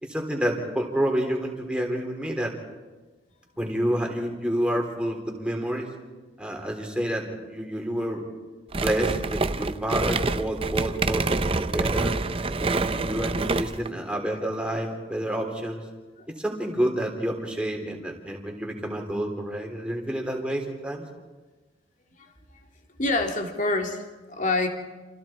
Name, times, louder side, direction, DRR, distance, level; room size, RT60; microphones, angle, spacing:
voice 1, 0.0-2.5 3.6-5.9 6.4-8.2 8.8-12.2 12.6-15.9 16.3-21.0, right 1 dB, 5° right, 1 dB, 3.4 m, -29 dB
sound 1, 8.7-13.9, right 3 dB, 30° right, 0.6 m, -27 dB
voice 2, 23.0-24.7, left 2 dB, 45° left, 3 dB, 2.6 m, -26 dB
28.5 x 28.0 x 4.4 m, 1.3 s
head